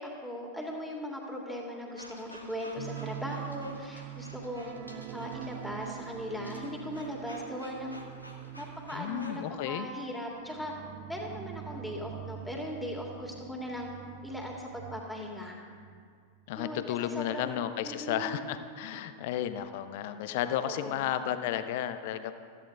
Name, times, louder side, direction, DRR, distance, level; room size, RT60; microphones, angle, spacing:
voice 1, 0.0-4.8 5.1-8.0 8.5-10.7 11.1-13.9 14.2-15.6 16.5-17.5 17.9-18.4 20.6-21.0, equal, ahead, -1 dB, 1.9 m, -39 dB
sound 1, 2.0-9.4, equal, 90° left, 1.0 m, -52 dB
sound 2, 2.8-16.0 16.3-16.5 16.9-17.0, right 13 dB, 40° right, 0.3 m, -45 dB
voice 2, 8.9-9.9 16.5-22.4, left 11 dB, 50° left, 11 dB, 0.5 m, -33 dB
15.5 x 13.5 x 2.4 m, 2.1 s
figure-of-eight pair, 90°, 0 cm